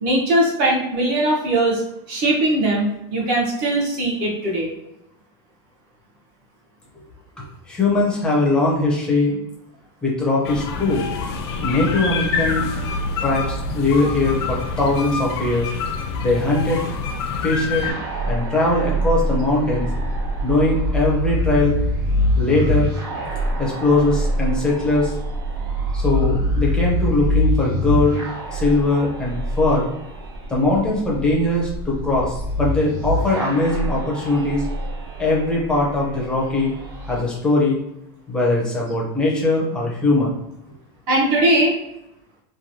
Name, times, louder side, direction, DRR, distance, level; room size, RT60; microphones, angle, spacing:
voice 1, 0.0-1.8 2.1-4.7 41.1-41.7, right 1 dB, 50° right, -2 dB, 0.9 m, -20 dB
voice 2, 7.7-9.4 10.0-11.0 11.6-12.7 13.2-15.7 16.2-16.8 17.4-17.9 18.2-19.9 20.4-21.8 22.4-22.9 23.6-25.1 25.9-28.2 28.5-29.9 30.5-34.6 35.2-36.7 37.1-37.8 38.3-40.4, left 2 dB, 5° left, -4 dB, 0.5 m, -20 dB
sound 1, 10.4-17.9, left 4 dB, 70° left, 0.4 m, -26 dB
sound 2, 17.8-37.2, equal, 90° right, 1.4 m, -25 dB
3.0 x 2.2 x 2.7 m, 0.87 s
supercardioid pair, 175°, 14 cm